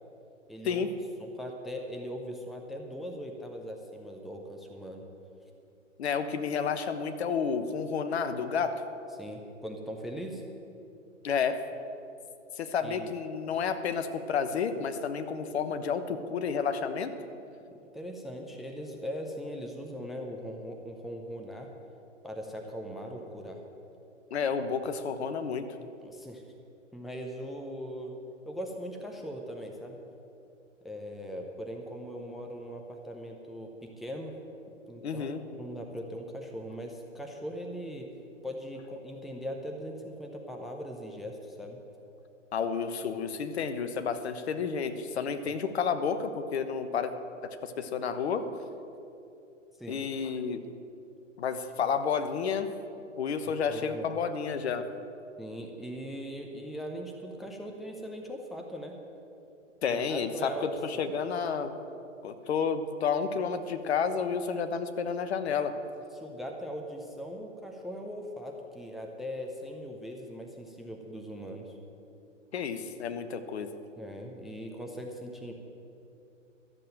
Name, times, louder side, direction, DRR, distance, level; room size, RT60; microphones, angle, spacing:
voice 1, 0.5-0.9 1.2-5.0 9.1-10.4 12.8-13.1 17.9-21.7 22.2-23.6 26.0-26.4 26.9-28.1 28.5-30.0 30.8-34.4 34.9-38.1 38.4-41.8 49.8-50.0 53.7-54.1 55.4-59.0 59.9-60.7 60.9-61.1 66.1-71.8 74.0-75.5, equal, ahead, 2 dB, 0.6 m, -40 dB
voice 2, 6.0-8.8 11.2-11.6 12.6-17.1 24.3-25.7 35.0-35.4 42.5-47.1 47.4-48.5 49.9-50.6 51.4-52.7 53.2-54.8 59.8-61.7 62.2-65.7 72.5-73.7, left 6 dB, 55° left, 9 dB, 1.1 m, -31 dB
13.0 x 7.6 x 8.9 m, 2.8 s
figure-of-eight pair, 120°, 37 cm